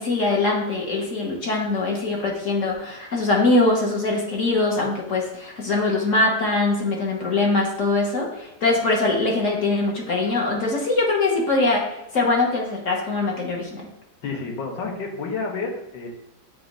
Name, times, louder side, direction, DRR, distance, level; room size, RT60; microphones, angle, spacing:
voice 1, 0.0-13.9, left 2 dB, 45° left, -1 dB, 1.3 m, -22 dB
voice 2, 14.2-16.1, left 4 dB, 65° left, 1 dB, 1.8 m, -30 dB
7.5 x 2.6 x 5.2 m, 0.89 s
omnidirectional pair, 2.2 m